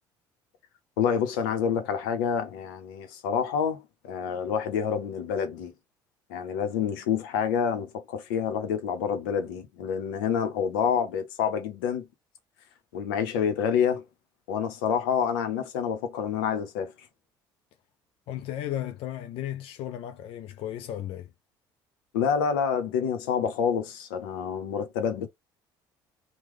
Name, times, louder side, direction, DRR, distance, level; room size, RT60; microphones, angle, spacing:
voice 1, 1.0-5.7 6.3-12.1 12.9-14.0 14.5-16.9 22.1-25.3, left 7 dB, 80° left, 0.8 m, -28 dB
voice 2, 18.3-21.3, left 12 dB, 60° left, 0.4 m, -35 dB
3.0 x 2.2 x 3.6 m
hypercardioid pair, 65°, 11 cm